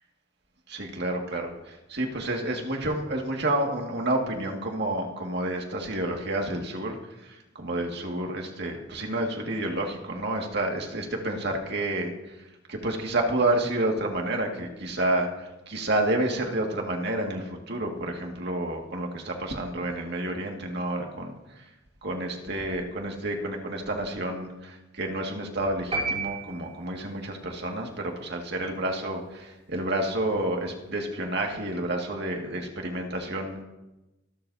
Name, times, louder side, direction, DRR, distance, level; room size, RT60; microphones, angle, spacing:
voice 1, 0.7-21.6 22.0-33.6, right 1 dB, 60° right, 1 dB, 2.1 m, -30 dB
sound 1, 25.9-27.2, right 3 dB, 30° right, 5.3 m, -31 dB
25.5 x 12.5 x 2.8 m, 1.0 s
head